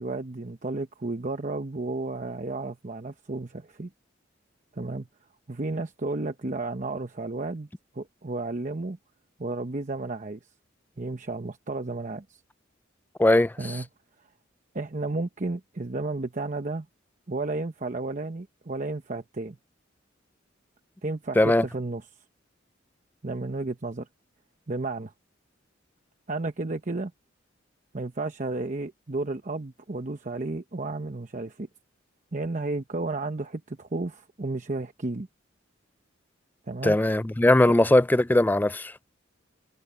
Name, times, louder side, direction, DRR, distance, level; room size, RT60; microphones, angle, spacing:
voice 1, 0.0-3.9 4.7-5.1 5.5-7.7 7.9-9.0 9.4-10.4 11.0-12.4 13.6-13.9 14.7-16.9 17.3-19.6 21.0-22.0 23.2-24.1 24.7-25.1 26.3-27.1 27.9-31.7 32.3-35.3 36.7-37.0, right 2 dB, 40° right, 0.9 m, -32 dB
voice 2, 13.2-13.8 21.4-21.6 36.8-38.9, left 1 dB, 10° left, 0.4 m, -20 dB
head